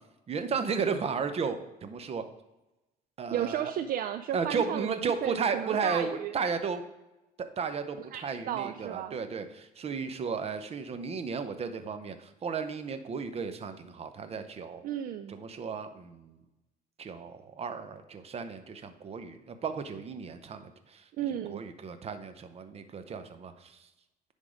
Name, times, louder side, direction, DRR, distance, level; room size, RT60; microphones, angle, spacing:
voice 1, 0.3-2.3 3.2-3.7 4.3-6.8 7.4-14.8 15.3-16.4 17.0-21.0 21.5-23.9, right 5 dB, 35° right, 10 dB, 0.8 m, -34 dB
voice 2, 3.3-6.3 8.1-9.2 14.8-15.4 21.2-21.6, right 10 dB, 60° right, 10 dB, 0.4 m, -34 dB
10.0 x 3.7 x 5.0 m, 0.99 s
cardioid pair, 110°, 17 cm